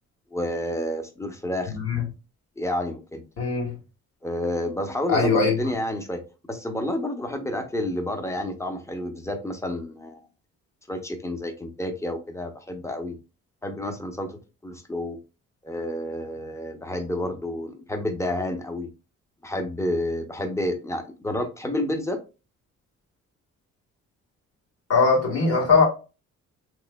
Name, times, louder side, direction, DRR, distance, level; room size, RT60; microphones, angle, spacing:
voice 1, 0.3-1.7 2.6-3.2 4.2-6.2 6.5-10.2 10.9-13.2 13.6-15.2 15.6-18.9 19.4-22.2, left 1 dB, 10° left, 0.7 m, -30 dB
voice 2, 1.7-2.0 3.4-3.7 5.1-5.5 24.9-25.8, left 4 dB, 50° left, 1.7 m, -20 dB
3.2 x 3.0 x 2.2 m
cardioid pair, 90°, 30 cm